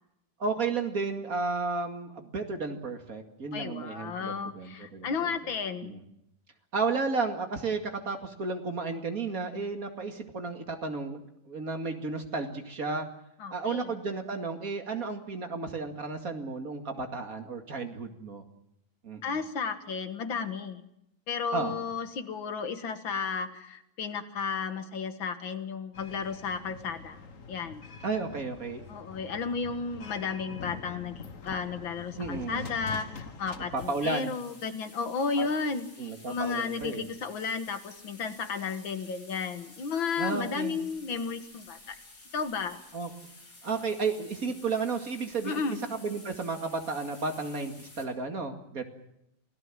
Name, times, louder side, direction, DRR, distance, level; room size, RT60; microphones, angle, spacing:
voice 1, 0.4-5.3 5.8-6.0 6.7-13.1 13.5-18.4 19.0-19.4 21.5-21.8 28.0-28.9 32.2-32.6 33.7-34.3 35.4-35.5 36.0-37.1 40.2-40.8 42.9-43.1 43.6-45.6 45.9-48.8, right 4 dB, 45° right, 4 dB, 2.6 m, -33 dB
voice 2, 3.5-6.0 13.4-13.9 19.2-20.8 21.3-27.2 27.5-27.8 28.9-42.0 42.3-42.8 45.4-45.8, left 5 dB, 90° left, 9 dB, 2.4 m, -33 dB
sound 1, 25.9-33.9, left 5 dB, 45° left, 1.8 m, -44 dB
sound 2, 33.8-48.0, left 2 dB, 65° left, 4.9 m, -52 dB
27.5 x 17.5 x 7.6 m, 0.82 s
omnidirectional pair, 2.1 m